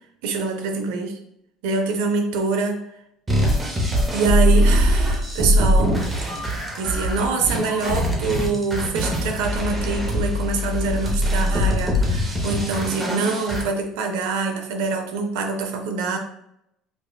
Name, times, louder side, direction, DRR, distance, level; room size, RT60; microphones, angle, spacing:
voice 1, 0.2-1.2 1.6-2.8 4.1-6.0 6.4-6.5 6.8-16.2, right 4 dB, 90° right, 4 dB, 0.5 m, -25 dB
sound 1, 3.3-13.6, equal, 15° right, 0.7 m, -22 dB
5.0 x 2.3 x 2.2 m, 0.78 s
cardioid pair, 150°, 0 cm